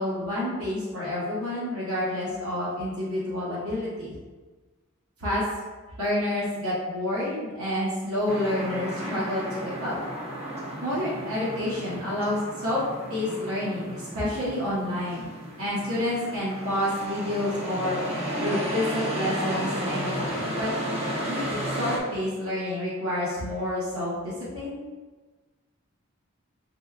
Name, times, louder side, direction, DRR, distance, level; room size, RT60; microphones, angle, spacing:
voice 1, 0.0-4.1 5.2-5.4 6.0-10.0 10.8-12.8 13.1-15.3 15.6-18.0 18.4-20.7 21.3-24.8, left 1 dB, 80° right, -9 dB, 1.2 m, -29 dB
sound 1, 8.3-22.0, equal, 30° right, 0.7 m, -33 dB
6.2 x 2.2 x 2.4 m, 1.3 s
head